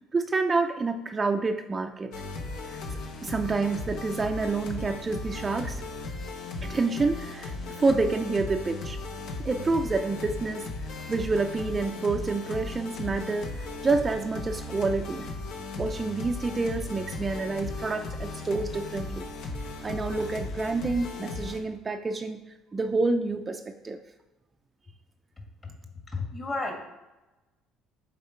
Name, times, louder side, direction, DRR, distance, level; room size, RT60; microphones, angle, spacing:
voice 1, 0.1-2.1 2.7-2.8 3.2-5.8 6.6-9.0 9.4-10.7 11.1-15.3 15.7-19.3 19.8-22.4 22.7-24.0, right 3 dB, 30° right, 6 dB, 0.4 m, -28 dB
sound 1, 2.1-21.6, left 2 dB, 70° left, 1.0 m, -36 dB
voice 2, 26.1-26.7, left 3 dB, 30° left, 1 dB, 1.8 m, -31 dB
7.2 x 3.5 x 4.4 m, 1.1 s
supercardioid pair, 85°, 0 cm